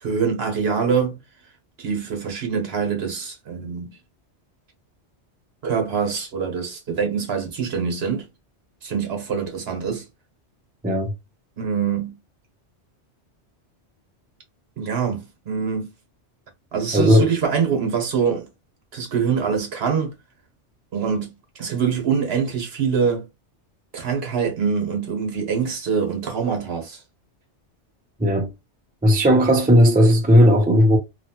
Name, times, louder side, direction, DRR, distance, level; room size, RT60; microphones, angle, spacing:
voice 1, 0.0-1.2 1.8-3.9 5.6-8.3 8.8-10.0 11.6-12.2 14.8-15.9 16.7-18.5 18.9-20.1 20.9-23.3 23.9-27.0, right 6 dB, 60° right, 1.1 m, -24 dB
voice 2, 16.9-17.3 28.2-28.5 29.0-31.0, equal, 10° right, 0.4 m, -15 dB
3.0 x 2.3 x 2.8 m
omnidirectional pair, 1.2 m